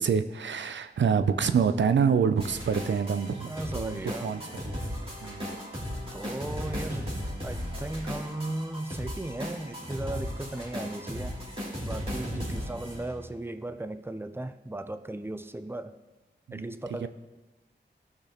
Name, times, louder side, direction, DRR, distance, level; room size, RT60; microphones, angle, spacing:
voice 1, 0.0-4.8 5.2-5.6 12.3-12.6 16.5-16.8 17.0-17.1, right 6 dB, 75° right, 10 dB, 0.5 m, -27 dB
sound 1, 2.4-13.3, equal, 30° right, 2.9 m, -36 dB
voice 2, 3.5-4.3 6.1-7.1 7.4-11.4 11.8-15.9 16.5-17.1, right 2 dB, 10° right, 10 dB, 0.5 m, -36 dB
14.0 x 5.9 x 3.0 m, 1.1 s
cardioid pair, 40°, 19 cm